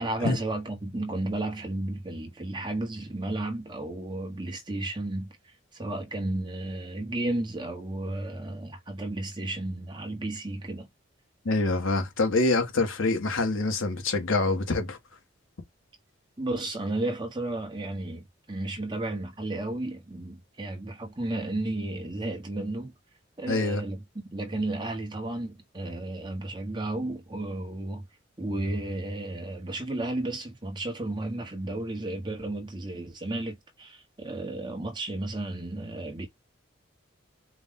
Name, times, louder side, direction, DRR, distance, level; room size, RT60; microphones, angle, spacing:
voice 1, 0.0-5.3 5.7-10.9 16.4-22.9 23.4-28.1 28.4-36.3, right 2 dB, 20° right, 1.2 m, -33 dB
voice 2, 11.4-15.0 23.5-23.8, left 2 dB, 85° left, 1.3 m, -25 dB
4.8 x 2.4 x 3.7 m
head